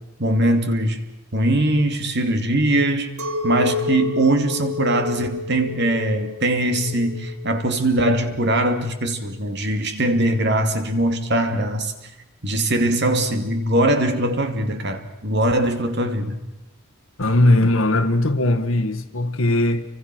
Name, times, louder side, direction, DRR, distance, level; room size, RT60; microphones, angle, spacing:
voice 1, 0.2-1.0 1.3-3.1 3.4-11.9 12.4-16.4, right 1 dB, 50° right, 2.5 m, -21 dB
Chink clink, 3.2-8.7, left 5 dB, 80° right, 2.1 m, -30 dB
voice 2, 17.2-19.8, left 1 dB, 70° left, 1.7 m, -19 dB
29.5 x 25.0 x 6.2 m
head